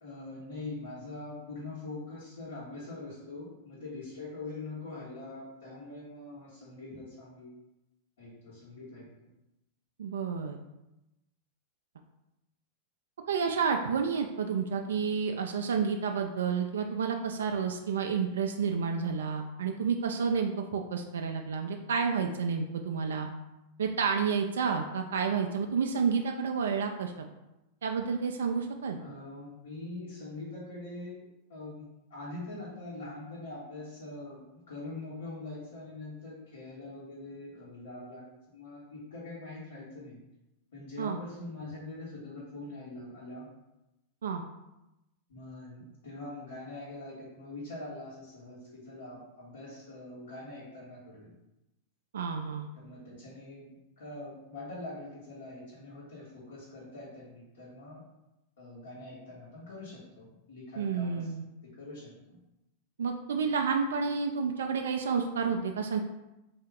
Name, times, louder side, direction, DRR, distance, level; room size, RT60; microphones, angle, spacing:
voice 1, 0.0-7.5 8.2-9.1 29.0-31.2 31.5-38.2 38.5-40.2 40.7-43.5 45.3-51.3 52.7-53.7 54.0-58.0 58.6-61.3 61.8-62.4, left 2 dB, 75° left, -9 dB, 1.3 m, -43 dB
voice 2, 10.0-10.6 13.3-23.3 23.8-27.1 27.8-29.0 41.0-41.2 44.2-44.4 52.1-52.7 60.8-61.4 63.0-66.0, right 6 dB, 70° right, 3 dB, 0.3 m, -30 dB
3.6 x 2.8 x 3.5 m, 0.94 s
figure-of-eight pair, 95°, 0 cm